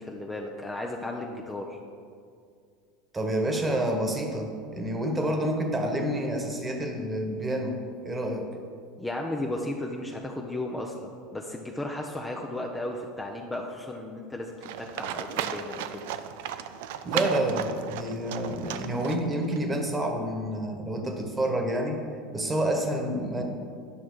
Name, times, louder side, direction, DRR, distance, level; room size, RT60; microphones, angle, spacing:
voice 1, 0.0-1.8 9.0-16.1, left 1 dB, 10° left, 1 dB, 0.8 m, -35 dB
voice 2, 3.1-7.7 8.0-8.5 17.0-22.0 22.3-23.4, right 1 dB, 20° right, 3 dB, 1.5 m, -28 dB
Livestock farm animals working animals, 14.6-19.6, right 10 dB, 65° right, 0.4 m, -35 dB
10.0 x 5.9 x 4.9 m, 2.2 s
hypercardioid pair, 80°, 0 cm